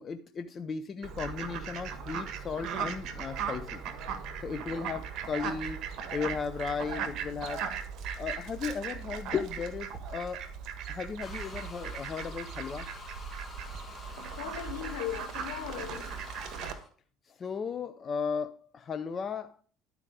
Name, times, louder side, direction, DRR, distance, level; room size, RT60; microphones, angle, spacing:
voice 1, 0.0-3.8 4.4-5.8 6.1-7.7 8.2-10.5 10.9-12.9 17.3-19.6, left 6 dB, 35° left, 0.5 m, -35 dB
Fowl, 1.0-16.7, right 7 dB, 50° right, 1.5 m, -38 dB
sound 1, 11.2-16.9, left 2 dB, 20° left, 2.0 m, -47 dB
voice 2, 14.2-16.3, left 11 dB, 75° left, 2.7 m, -38 dB
11.5 x 4.9 x 4.8 m
hypercardioid pair, 70°, 0 cm